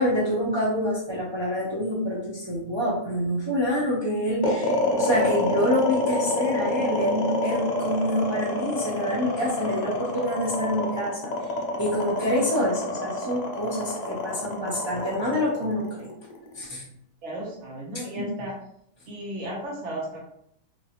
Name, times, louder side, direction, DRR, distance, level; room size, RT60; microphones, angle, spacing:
voice 1, 0.0-11.3 11.8-16.0 16.5-16.8, equal, 35° right, -7 dB, 0.4 m, -26 dB
sound 1, 4.4-16.7, left 2 dB, 80° left, 0.3 m, -27 dB
voice 2, 17.2-18.5 19.1-20.2, right 1 dB, 60° right, -4 dB, 1.1 m, -34 dB
2.9 x 2.5 x 2.8 m, 0.73 s
omnidirectional pair, 1.4 m